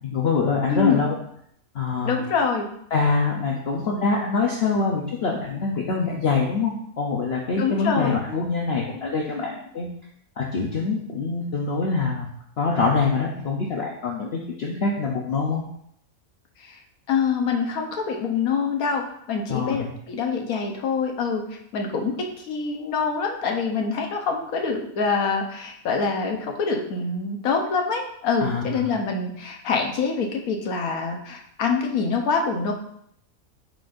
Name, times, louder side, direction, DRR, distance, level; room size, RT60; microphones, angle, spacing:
voice 1, 0.0-1.1 1.7-2.2 2.9-9.9 10.4-12.3 12.6-15.6 19.5-19.9 28.4-28.9, left 4 dB, 55° left, -1 dB, 0.9 m, -24 dB
voice 2, 0.7-1.0 2.0-2.7 7.6-8.2 16.6-16.8 17.1-21.4 21.7-32.7, left 5 dB, 80° left, 2 dB, 1.4 m, -25 dB
9.7 x 4.0 x 2.6 m, 0.71 s
omnidirectional pair, 1.5 m